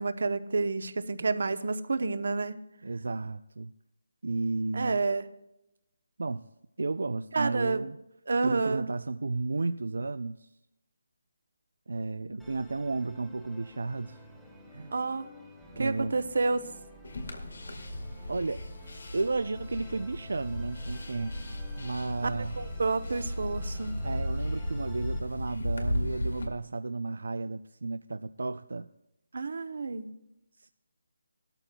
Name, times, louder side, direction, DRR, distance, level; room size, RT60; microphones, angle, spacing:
voice 1, 0.0-2.6 4.7-5.3 7.3-7.9 8.3-8.9 14.9-15.2 15.8-16.7 22.2-23.9 29.3-30.1, right 3 dB, 55° right, 11 dB, 0.8 m, -29 dB
voice 2, 2.8-3.7 4.2-5.0 6.2-6.4 6.8-8.0 8.4-10.5 11.9-14.2 14.7-14.9 15.7-16.1 18.3-18.6 19.1-22.6 24.0-28.9 30.6-30.7, right 3 dB, 80° right, 10 dB, 0.4 m, -33 dB
Musical instrument, 12.4-25.2, equal, ahead, 0.7 m, -52 dB
sound 1, 17.0-26.5, left 1 dB, 90° left, 2.2 m, -35 dB
18.5 x 13.0 x 2.3 m, 0.88 s
hypercardioid pair, 180°, 0 cm